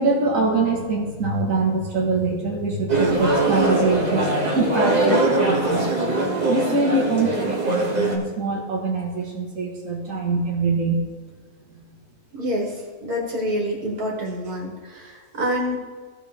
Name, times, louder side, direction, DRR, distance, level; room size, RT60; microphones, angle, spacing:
voice 1, 0.0-5.9 6.5-11.0, right 3 dB, 60° right, -4 dB, 1.9 m, -23 dB
sound 1, 2.9-8.2, right 2 dB, 30° right, 1.5 m, -22 dB
voice 2, 12.3-12.7 13.0-15.8, equal, 75° right, -1 dB, 2.4 m, -27 dB
16.0 x 6.5 x 3.5 m, 1.5 s
omnidirectional pair, 1.6 m